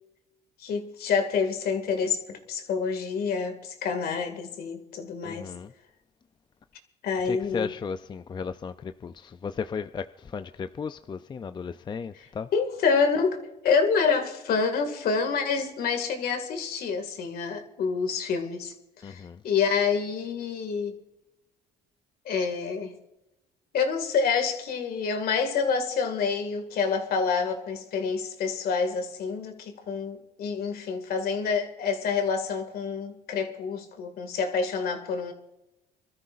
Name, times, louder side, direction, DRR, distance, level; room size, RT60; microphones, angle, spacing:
voice 1, 0.6-5.5 7.0-7.7 12.5-18.7 19.0-21.0 22.3-22.9 23.7-35.3, left 5 dB, 65° left, 2.2 m, -27 dB
voice 2, 5.2-5.7 7.2-12.5 19.0-19.4, left 6 dB, 25° left, 0.5 m, -35 dB
25.5 x 13.5 x 2.6 m
cardioid pair, 110°, 17 cm